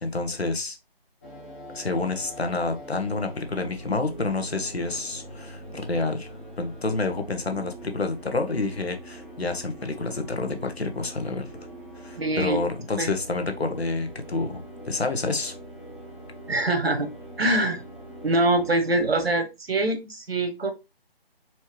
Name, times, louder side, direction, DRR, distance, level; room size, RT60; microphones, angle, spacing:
voice 1, 0.0-0.8 1.7-6.3 6.6-11.5 12.0-15.5, left 3 dB, 85° left, 1.1 m, -28 dB
sound 1, 1.2-19.4, right 1 dB, 15° left, 0.7 m, -43 dB
voice 2, 12.2-12.6 13.0-13.1 16.5-17.1 17.4-17.8 18.2-20.7, right 2 dB, 75° right, 1.4 m, -24 dB
4.4 x 3.0 x 3.1 m
figure-of-eight pair, 155°, 30 cm